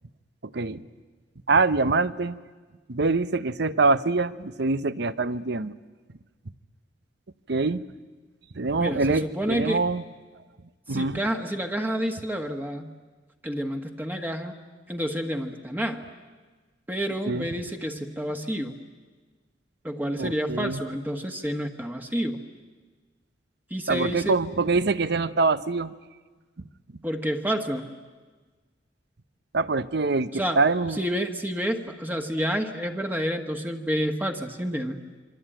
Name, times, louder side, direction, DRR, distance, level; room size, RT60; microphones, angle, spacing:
voice 1, 0.4-0.8 1.5-2.4 2.9-5.7 7.5-7.8 8.5-10.0 10.9-11.2 17.3-17.5 20.2-20.8 23.9-25.9 29.5-31.0, right 3 dB, 65° right, 14 dB, 0.9 m, -24 dB
voice 2, 8.8-9.8 10.9-12.9 13.4-14.6 14.9-16.0 16.9-18.8 19.8-22.4 23.7-24.4 27.0-27.8 30.3-30.6 31.0-35.0, equal, 10° right, 4 dB, 1.4 m, -29 dB
27.5 x 24.0 x 9.0 m, 1.4 s
head